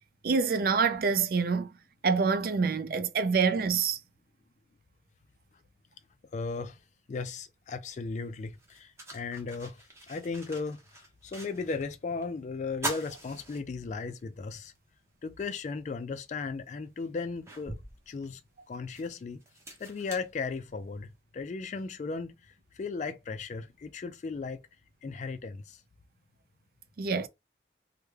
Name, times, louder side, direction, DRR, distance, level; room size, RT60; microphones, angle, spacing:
voice 1, 0.2-1.7 2.0-4.0 27.0-27.3, right 5 dB, 55° right, 0.4 m, -26 dB
voice 2, 6.3-6.8 7.1-14.7 15.2-17.7 18.1-18.4 18.7-19.4 19.8-24.6 25.0-25.8, left 4 dB, 40° left, 0.3 m, -36 dB
sound 1, 7.9-8.0 8.5-11.9 12.2-12.3 12.7-14.2 14.7-14.8 16.2-16.3 16.8-21.0, right 2 dB, 15° right, 0.8 m, -42 dB
3.3 x 2.1 x 3.2 m
head